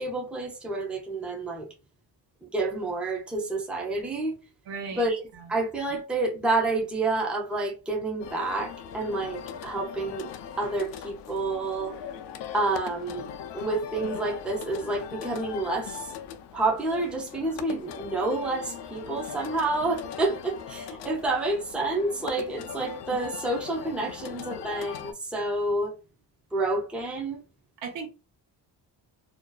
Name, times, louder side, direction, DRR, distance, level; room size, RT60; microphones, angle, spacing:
voice 1, 0.0-1.7 2.4-4.4 4.9-5.2 5.5-10.3 10.6-12.0 12.5-13.3 13.5-16.1 16.5-26.0 26.5-27.4, right 2 dB, 5° right, 0.5 m, -29 dB
voice 2, 4.7-5.0 5.3-5.5 27.8-28.1, right 5 dB, 85° right, 0.8 m, -36 dB
sound 1, 8.2-25.1, left 8 dB, 85° left, 0.5 m, -40 dB
2.5 x 2.3 x 2.3 m
cardioid pair, 160°, 42 cm